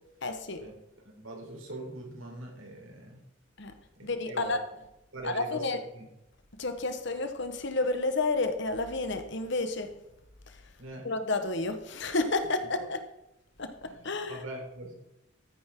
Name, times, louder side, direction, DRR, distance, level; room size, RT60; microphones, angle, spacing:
voice 1, 0.2-0.7 3.6-3.7 4.0-4.6 5.2-5.8 6.6-10.0 10.5-10.6 11.0-13.0 13.6-14.4, left 3 dB, 60° left, 1.5 m, -31 dB
voice 2, 1.0-3.2 4.0-4.6 5.1-5.6 5.9-6.1 10.8-11.1 12.4-12.5 13.9-14.9, right 1 dB, 80° right, 4.4 m, -42 dB
14.0 x 10.5 x 3.9 m
head